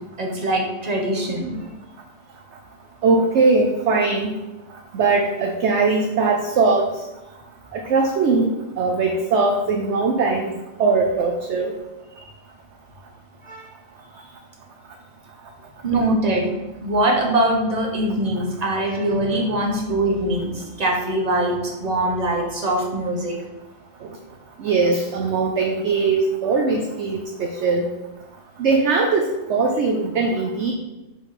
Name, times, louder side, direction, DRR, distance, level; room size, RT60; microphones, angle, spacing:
voice 1, 0.2-1.6 13.4-13.6 15.8-16.5 16.8-23.4, right 1 dB, 30° right, 0 dB, 1.3 m, -22 dB
voice 2, 3.0-4.3 4.9-6.9 7.7-8.5 8.8-10.5 10.8-11.7 24.6-27.9 28.6-30.7, right 4 dB, 60° right, 3 dB, 0.9 m, -20 dB
6.0 x 4.0 x 5.8 m, 1.0 s
omnidirectional pair, 1.4 m